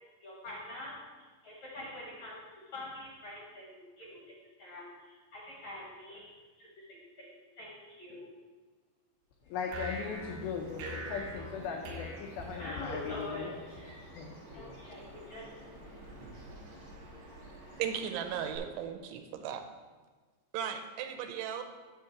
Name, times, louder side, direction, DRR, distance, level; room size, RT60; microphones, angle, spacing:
voice 1, 0.2-6.3 6.6-6.8 7.2-8.2 12.6-14.1 14.5-15.5, left 1 dB, 65° left, -5 dB, 1.9 m, -45 dB
voice 2, 9.5-13.6 14.1-14.9, left 5 dB, 85° left, 1 dB, 2.1 m, -39 dB
sound 1, 9.7-13.1, equal, 75° right, 3.2 m, -43 dB
Bird vocalization bird call bird song, 9.9-18.6, right 1 dB, 50° right, 2.5 m, -50 dB
voice 3, 17.8-19.7 20.5-21.6, right 8 dB, 90° right, 6 dB, 3.1 m, -36 dB
8.7 x 3.7 x 7.0 m, 1.4 s
omnidirectional pair, 5.3 m